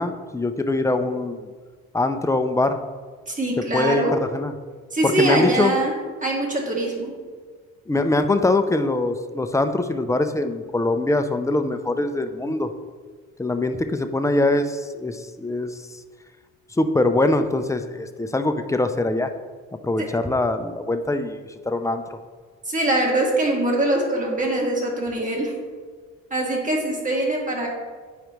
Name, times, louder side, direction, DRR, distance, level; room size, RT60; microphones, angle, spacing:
voice 1, 0.0-1.5 1.9-2.8 3.7-4.5 5.0-5.7 7.9-12.7 13.4-15.8 16.8-19.3 19.8-21.4 21.7-22.0, left 2 dB, 10° left, 8 dB, 0.5 m, -23 dB
voice 2, 3.3-4.1 4.9-5.9 6.2-7.1 20.0-20.1 22.7-25.5 26.3-27.7, right 1 dB, 25° right, -1 dB, 1.9 m, -23 dB
9.1 x 4.9 x 3.0 m, 1.5 s
cardioid pair, 90°, 30 cm